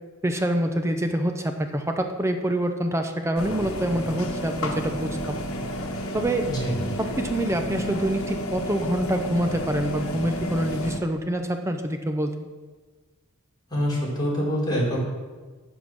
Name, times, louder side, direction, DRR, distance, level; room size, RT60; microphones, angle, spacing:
voice 1, 0.2-5.4 6.1-12.5, right 1 dB, 15° right, 6 dB, 0.6 m, -26 dB
sound 1, 3.4-11.0, equal, 80° left, 1.2 m, -31 dB
voice 2, 6.5-6.8 13.7-15.0, equal, 20° left, -6 dB, 3.8 m, -25 dB
8.8 x 7.3 x 6.2 m, 1.3 s
head